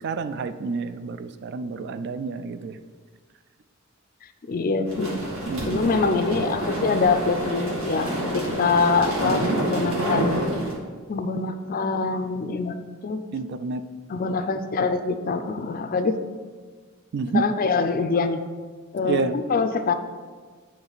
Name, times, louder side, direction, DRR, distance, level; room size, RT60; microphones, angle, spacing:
voice 1, 0.0-2.8 5.4-5.9 9.2-9.6 13.3-13.8 17.1-17.4 19.0-19.4, right 4 dB, 55° right, 10 dB, 0.3 m, -29 dB
voice 2, 4.4-5.2 5.7-10.5 11.1-12.7 13.0-13.2 14.1-16.1 17.3-18.4 18.9-19.9, left 4 dB, 45° left, 9 dB, 0.4 m, -24 dB
sound 1, 4.9-10.7, right 1 dB, 85° right, 1.8 m, -27 dB
8.8 x 3.2 x 3.9 m, 1.5 s
head